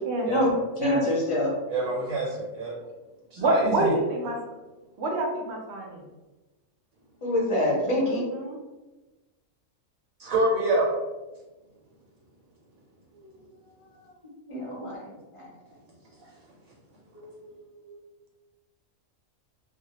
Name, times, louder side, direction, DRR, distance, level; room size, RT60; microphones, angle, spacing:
voice 1, 0.3-1.5 7.2-8.3 13.2-13.3 14.5-15.0 15.3-15.4 17.1-18.0, left 1 dB, 35° left, -5 dB, 0.6 m, -26 dB
voice 2, 1.7-2.7 3.3-3.9 10.2-10.9, right 2 dB, 85° right, -5 dB, 1.1 m, -26 dB
voice 3, 3.4-4.4 5.0-6.0 8.0-8.6, right 2 dB, 65° right, 0 dB, 0.8 m, -27 dB
2.1 x 2.1 x 2.8 m, 1.1 s
omnidirectional pair, 1.4 m